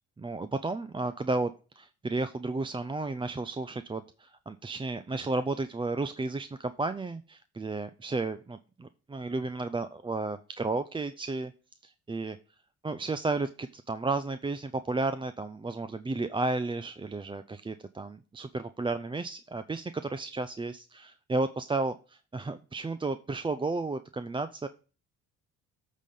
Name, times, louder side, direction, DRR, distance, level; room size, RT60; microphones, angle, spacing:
voice 1, 0.2-11.5 11.8-12.4 12.8-24.7, right 3 dB, 15° right, 11 dB, 0.5 m, -33 dB
8.2 x 3.8 x 6.6 m, 0.35 s
supercardioid pair, 65°, 36 cm